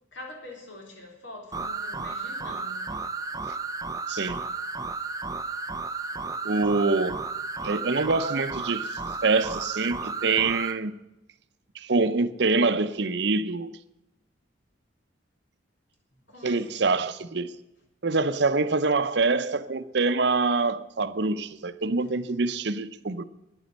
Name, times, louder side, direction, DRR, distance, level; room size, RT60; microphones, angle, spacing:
voice 1, 0.1-3.1 6.2-6.3 16.3-17.0 22.0-22.1, left 2 dB, 70° left, 3.9 m, -45 dB
sound 1, 1.5-10.8, right 4 dB, 20° right, 0.5 m, -33 dB
voice 2, 4.1-4.4 6.4-7.2 7.6-11.0 11.7-13.7 16.4-17.5 18.0-23.2, right 3 dB, 60° right, 0.7 m, -25 dB
11.0 x 9.5 x 9.1 m
head